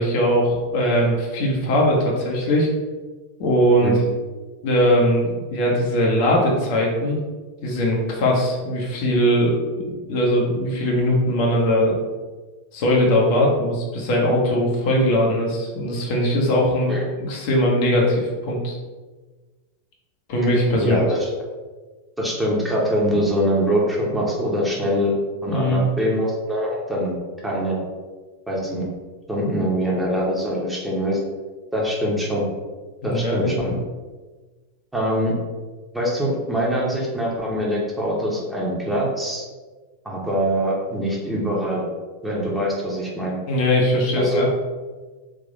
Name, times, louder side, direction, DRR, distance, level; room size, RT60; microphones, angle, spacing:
voice 1, 0.0-2.7 3.4-3.9 4.6-7.2 7.6-12.0 12.7-18.8 20.3-21.0 25.5-25.8 33.0-33.7 43.5-44.5, equal, 45° left, -2 dB, 0.9 m, -20 dB
voice 2, 20.8-21.3 22.2-25.1 25.4-27.1 27.4-27.8 28.5-28.8 29.3-31.2 31.7-32.5 33.0-33.7 34.9-35.3 35.9-39.4 40.0-41.8 42.2-43.4 44.1-44.5, equal, 5° right, -4 dB, 1.0 m, -23 dB
3.6 x 2.8 x 3.9 m, 1.3 s
figure-of-eight pair, 90°, 0 cm